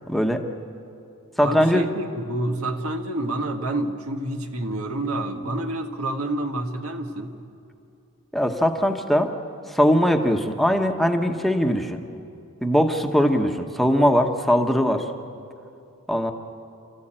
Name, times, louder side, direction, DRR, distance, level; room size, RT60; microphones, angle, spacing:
voice 1, 0.1-0.4 1.4-1.9 5.4-5.5 8.3-9.3 9.7-12.0 12.6-15.1 16.1-16.3, equal, ahead, 4 dB, 1.1 m, -21 dB
voice 2, 1.4-7.4, right 1 dB, 85° right, 5 dB, 1.7 m, -28 dB
29.5 x 14.5 x 8.9 m, 2.7 s
head